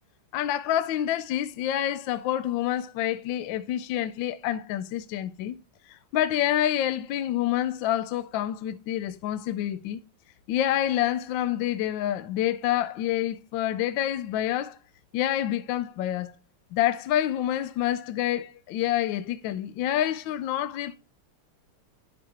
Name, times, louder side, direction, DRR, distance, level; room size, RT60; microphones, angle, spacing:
voice 1, 0.3-5.6 5.9-10.0 10.5-14.8 15.1-16.3 16.7-20.9, left 12 dB, 75° left, 1.1 m, -27 dB
11.0 x 5.2 x 2.8 m
omnidirectional pair, 2.4 m